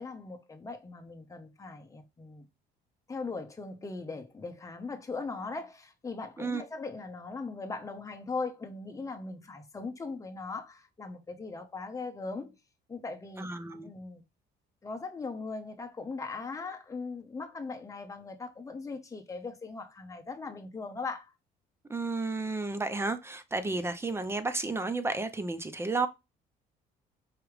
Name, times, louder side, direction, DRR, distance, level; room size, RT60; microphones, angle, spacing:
voice 1, 0.0-2.5 3.1-12.5 12.9-13.5 13.8-14.2 14.8-21.3, left 4 dB, 20° left, 1.0 m, -39 dB
voice 2, 13.4-13.9 21.9-26.1, right 3 dB, 15° right, 0.6 m, -32 dB
4.9 x 3.0 x 3.2 m
cardioid pair, 110°, 17 cm